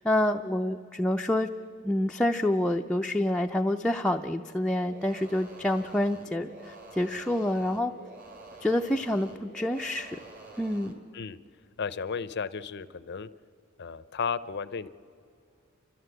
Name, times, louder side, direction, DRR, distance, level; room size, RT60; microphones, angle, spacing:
voice 1, 0.0-1.5 1.8-7.9 8.6-10.2 10.6-11.0, left 1 dB, 5° left, 2 dB, 0.4 m, -27 dB
sound 1, 4.9-11.0, right 3 dB, 40° right, 2.3 m, -48 dB
voice 2, 11.8-13.3 13.8-14.9, left 5 dB, 50° left, 15 dB, 0.6 m, -34 dB
30.0 x 13.0 x 7.8 m, 2.5 s
head